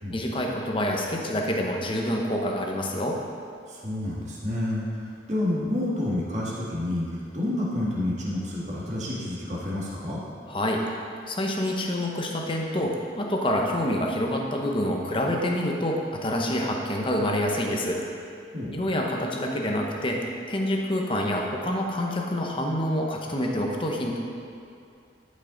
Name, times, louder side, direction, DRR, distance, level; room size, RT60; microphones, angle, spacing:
voice 1, 0.1-3.2 10.5-10.8 11.3-18.0 18.7-24.2, left 1 dB, 30° left, 0 dB, 0.9 m, -27 dB
voice 2, 3.7-4.9 5.3-10.2 18.5-18.8, left 1 dB, 40° right, -6 dB, 1.8 m, -29 dB
12.0 x 5.5 x 3.9 m, 2.5 s
head